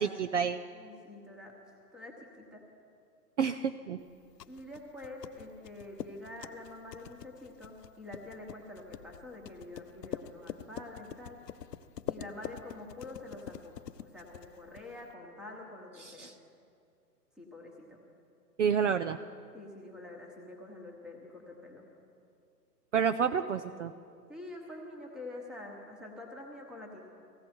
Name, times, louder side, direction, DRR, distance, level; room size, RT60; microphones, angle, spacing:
voice 1, 0.0-0.6 3.4-4.0 16.0-16.3 18.6-19.2 22.9-23.9, right 7 dB, 50° right, 9 dB, 0.5 m, -29 dB
voice 2, 0.7-2.6 4.5-11.4 12.1-13.8 14.0-16.3 17.4-18.0 19.5-21.8 24.3-27.0, left 2 dB, ahead, -1 dB, 1.1 m, -46 dB
sound 1, 4.1-15.1, left 9 dB, 75° left, 0.7 m, -45 dB
17.5 x 15.5 x 4.4 m, 2.4 s
hypercardioid pair, 145°, 49 cm